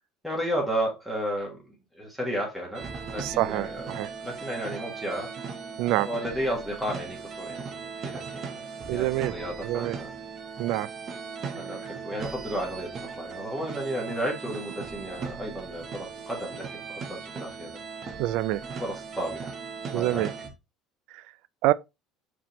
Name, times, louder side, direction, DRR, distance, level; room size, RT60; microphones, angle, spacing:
voice 1, 0.2-4.0 4.2-5.3 6.0-8.6 8.9-10.1 11.6-17.7 18.8-19.5 19.9-20.3, equal, ahead, 1.5 m, -33 dB
sound 1, 2.7-20.5, right 5 dB, 30° right, 0.9 m, -38 dB
voice 2, 3.2-4.1 5.8-6.1 8.9-9.3 9.6-10.0 10.6-10.9 18.2-18.6 19.9-20.3 21.1-21.2 21.6-21.7, right 16 dB, 65° right, 0.3 m, -26 dB
4.8 x 3.6 x 2.9 m
cardioid pair, 150°, 0 cm